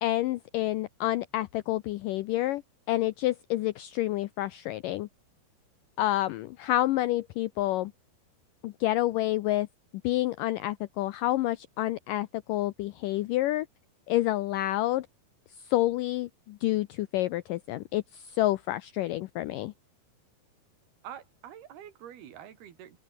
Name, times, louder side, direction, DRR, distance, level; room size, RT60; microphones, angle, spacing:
voice 1, 0.0-2.6 2.9-5.1 6.0-7.9 8.6-9.7 10.0-13.7 14.1-15.1 15.7-19.7, left 15 dB, 90° left, 1.9 m, -28 dB
voice 2, 21.0-23.0, right 10 dB, 70° right, 4.2 m, -46 dB
open air
omnidirectional pair, 4.7 m